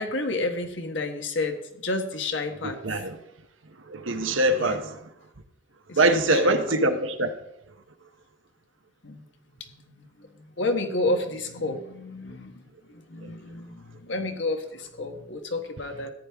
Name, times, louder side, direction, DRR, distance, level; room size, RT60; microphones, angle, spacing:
voice 1, 0.0-2.8 4.6-4.8 5.9-6.8 9.0-9.2 9.6-10.3 10.6-12.6 12.9-16.1, left 2 dB, 65° left, 1.3 m, -30 dB
voice 2, 3.9-4.9 6.0-7.3, right 2 dB, 85° right, 1.0 m, -23 dB
14.0 x 9.5 x 3.5 m
head